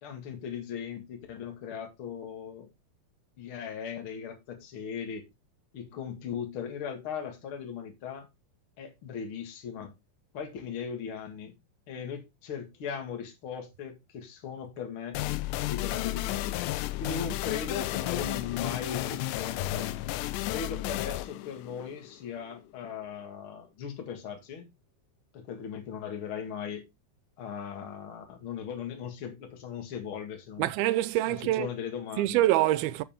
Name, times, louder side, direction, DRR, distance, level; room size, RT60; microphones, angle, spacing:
voice 1, 0.0-2.7 3.4-5.3 5.7-8.3 8.8-9.9 10.3-11.5 11.9-15.2 15.7-19.9 20.5-24.7 25.3-26.9 27.4-30.7 31.3-32.4, left 7 dB, 45° left, 2.1 m, -38 dB
sound 1, 15.1-22.6, left 16 dB, 85° left, 1.9 m, -33 dB
voice 2, 30.6-31.7 32.2-33.0, right 15 dB, 85° right, 2.4 m, -25 dB
8.6 x 7.0 x 3.6 m
omnidirectional pair, 4.3 m